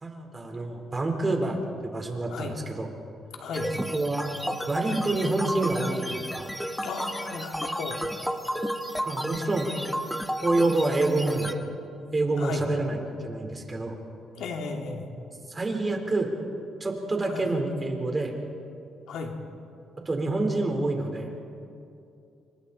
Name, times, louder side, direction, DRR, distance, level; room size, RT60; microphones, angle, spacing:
voice 1, 0.0-2.9 3.9-4.3 4.7-6.5 9.0-9.7 10.4-11.6 12.1-13.0 13.2-14.0 15.5-16.3 16.8-18.3 20.0-21.3, right 2 dB, 25° right, 3 dB, 4.1 m, -27 dB
voice 2, 3.4-3.7 6.8-8.0 12.4-12.6 14.4-15.1 17.3-17.4 19.1-19.3, left 4 dB, 80° left, 2 dB, 2.7 m, -34 dB
sound 1, 3.5-11.5, equal, ahead, 1.4 m, -32 dB
29.0 x 25.0 x 4.3 m, 2.6 s
cardioid pair, 90°, 0 cm